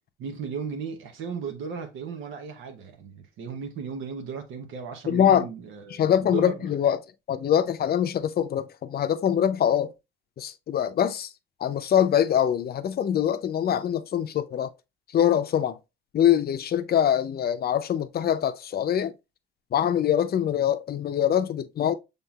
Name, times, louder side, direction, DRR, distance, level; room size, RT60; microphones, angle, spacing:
voice 1, 0.2-6.7, right 6 dB, 90° right, 0.9 m, -36 dB
voice 2, 5.1-5.5 5.9-7.0 7.3-9.9 10.4-11.3 11.6-14.7 15.1-15.8 16.1-19.1 19.7-21.9, left 9 dB, 50° left, 0.5 m, -23 dB
5.5 x 3.6 x 2.3 m
cardioid pair, 90°, 20 cm